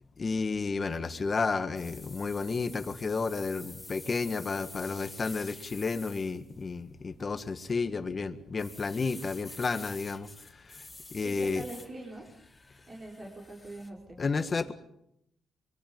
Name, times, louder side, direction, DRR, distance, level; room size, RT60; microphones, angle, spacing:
voice 1, 0.2-10.3 10.6-10.8 11.1-11.6 14.2-14.7, left 4 dB, 35° left, 10 dB, 1.6 m, -32 dB
sound 1, 1.8-6.7 7.7-8.1 8.6-13.9, left 2 dB, 15° left, 3.0 m, -48 dB
voice 2, 11.2-12.3 12.9-14.2, right 1 dB, 35° right, -2 dB, 4.9 m, -43 dB
25.5 x 23.0 x 5.4 m, 0.77 s
cardioid pair, 90°, 0 cm